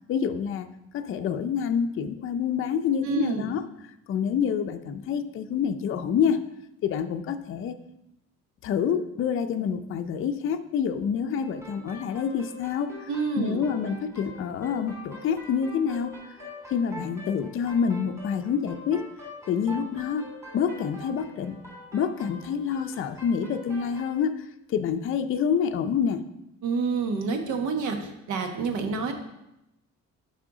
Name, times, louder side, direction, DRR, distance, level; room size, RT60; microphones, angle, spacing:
voice 1, 0.1-0.7 0.9-3.6 4.1-6.4 6.8-7.7 8.6-12.9 13.4-16.1 16.7-19.1 19.5-21.6 21.9-26.2, left 7 dB, 45° left, 8 dB, 0.5 m, -27 dB
voice 2, 3.0-3.5 13.1-13.6 26.6-29.1, right 4 dB, 85° right, 5 dB, 1.3 m, -28 dB
sound 1, 11.4-24.1, left 1 dB, 10° right, 2.9 m, -43 dB
9.9 x 5.6 x 3.8 m, 0.87 s
cardioid pair, 170°, 30 cm